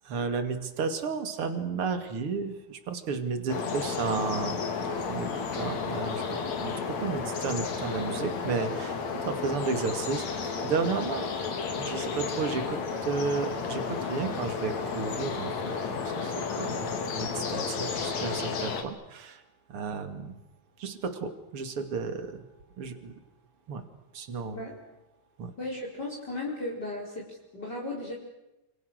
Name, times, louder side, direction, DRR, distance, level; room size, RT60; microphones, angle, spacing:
voice 1, 0.0-4.6 5.1-5.3 5.6-9.0 9.2-11.3 11.7-16.9 17.2-19.4 19.7-20.4 20.8-22.4 22.8-23.1 23.7-23.8 24.1-24.6 25.4-25.5, right 5 dB, 45° right, 8 dB, 3.1 m, -33 dB
sound 1, 3.5-18.8, left 5 dB, 60° left, 3.7 m, -32 dB
voice 2, 25.6-28.1, left 2 dB, 30° left, -2 dB, 5.1 m, -36 dB
29.0 x 28.5 x 6.6 m, 0.96 s
omnidirectional pair, 3.6 m